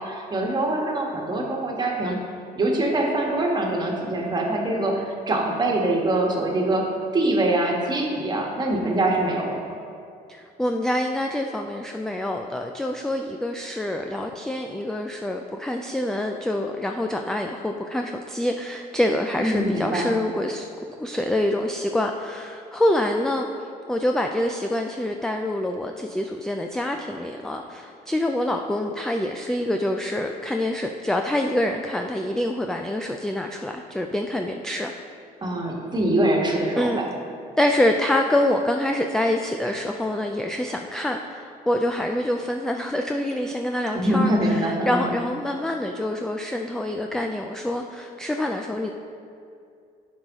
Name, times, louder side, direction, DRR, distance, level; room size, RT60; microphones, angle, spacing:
voice 1, 0.0-2.2 2.6-6.9 7.1-9.7 19.4-20.1 35.4-37.1 43.9-45.1, right 1 dB, 25° right, 0 dB, 1.4 m, -24 dB
voice 2, 10.3-20.7 21.0-34.9 36.8-37.0 37.6-48.9, left 1 dB, 5° left, 3 dB, 0.3 m, -26 dB
10.5 x 4.9 x 3.6 m, 2.5 s
cardioid pair, 110°, 17 cm